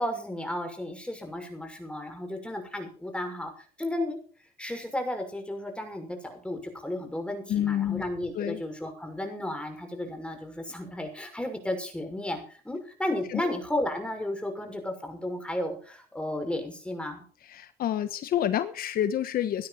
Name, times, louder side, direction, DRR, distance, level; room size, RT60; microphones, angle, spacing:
voice 1, 0.0-3.5 3.8-4.2 4.6-17.2, left 1 dB, 5° left, 4 dB, 6.3 m, -33 dB
voice 2, 7.5-8.0 8.3-8.6 13.3-13.5 17.4-19.7, left 10 dB, 60° left, 11 dB, 1.2 m, -28 dB
17.5 x 12.5 x 4.3 m, 0.41 s
cardioid pair, 110°, 17 cm